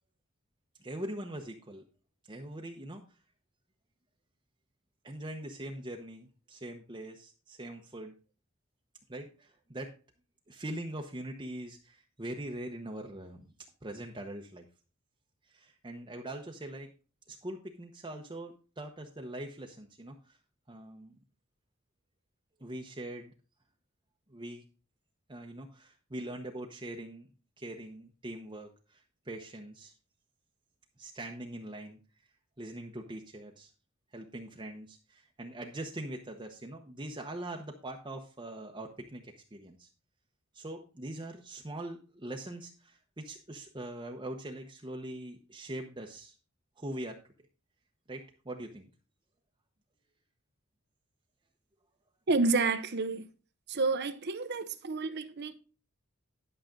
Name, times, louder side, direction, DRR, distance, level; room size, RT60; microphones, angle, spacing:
voice 1, 0.8-1.8 2.3-3.0 5.0-8.1 9.1-9.9 10.5-13.5 13.8-14.6 15.5-16.9 17.3-20.4 20.7-21.1 22.6-23.3 24.3-24.6 25.3-27.3 27.6-29.9 31.0-32.0 32.6-33.7 34.1-39.9 40.5-46.4 46.8-47.2 48.1-48.9, right 1 dB, 20° right, 0.9 m, -42 dB
voice 2, 52.3-53.3 53.7-55.5, right 3 dB, 50° right, 0.8 m, -29 dB
11.5 x 6.7 x 3.7 m
head